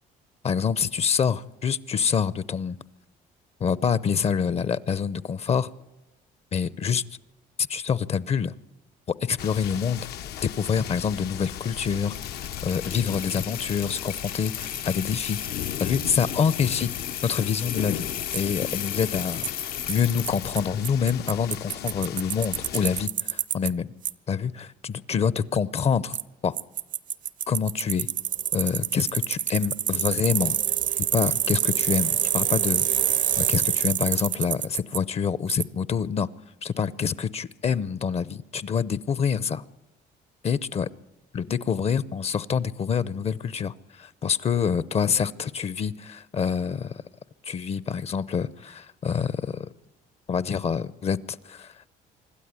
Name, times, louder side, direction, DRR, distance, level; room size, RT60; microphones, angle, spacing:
voice 1, 0.4-2.8 3.6-5.7 6.5-7.0 7.7-8.5 9.2-10.1 10.4-12.1 12.6-15.4 15.8-16.9 17.2-18.1 18.3-19.5 19.9-23.9 24.3-26.2 26.4-26.5 27.5-28.1 28.5-30.6 31.1-36.3 36.6-39.6 40.4-40.9 41.3-47.0 47.4-49.7 50.3-51.9, left 6 dB, 40° left, 19 dB, 0.7 m, -26 dB
sound 1, 9.4-23.1, left 11 dB, 75° left, 0.9 m, -37 dB
sound 2, 12.1-20.8, left 10 dB, 55° left, 1.2 m, -35 dB
Bicycle, 18.3-18.4 19.4-19.5 19.9-20.0 20.3-20.4 20.6-20.7 20.8-23.7 24.0-24.1 26.1-26.2 26.6-35.0 35.5-35.6, right 10 dB, 50° right, 0.7 m, -26 dB
25.5 x 12.5 x 9.7 m, 0.98 s
cardioid pair, 110°, 17 cm